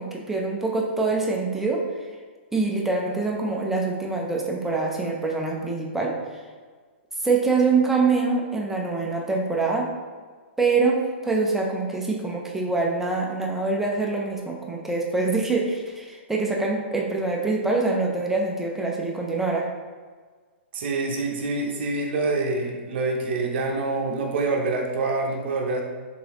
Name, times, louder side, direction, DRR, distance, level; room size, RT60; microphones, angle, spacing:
voice 1, 0.0-1.8 2.5-6.4 7.2-9.9 10.6-19.7, right 3 dB, 5° right, -2 dB, 0.5 m, -25 dB
voice 2, 20.7-25.8, right 3 dB, 60° right, 1 dB, 0.7 m, -26 dB
3.8 x 3.8 x 3.0 m, 1.5 s
hypercardioid pair, 145°, 7 cm